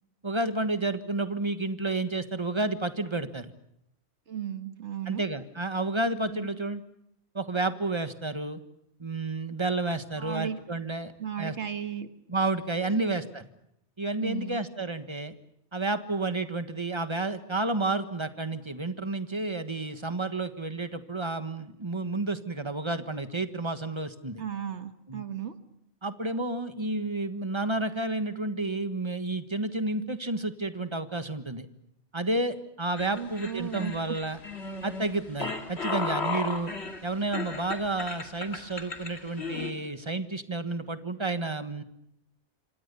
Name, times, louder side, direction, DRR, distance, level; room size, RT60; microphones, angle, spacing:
voice 1, 0.2-3.5 5.1-6.8 7.3-8.6 9.0-11.1 11.4-11.5 12.3-13.4 14.0-15.3 15.7-24.4 25.1-25.2 26.0-31.7 32.1-34.4 34.8-36.7 37.0-41.8, right 2 dB, 25° right, 10 dB, 1.5 m, -31 dB
voice 2, 4.3-5.2 6.3-6.5 10.2-10.6 11.2-12.1 13.0-13.1 14.2-14.6 24.4-25.5 33.1-34.2, right 9 dB, 80° right, 9 dB, 1.8 m, -35 dB
sound 1, 33.0-39.7, left 3 dB, 70° left, 2.6 m, -35 dB
27.0 x 25.5 x 6.9 m, 0.81 s
omnidirectional pair, 1.2 m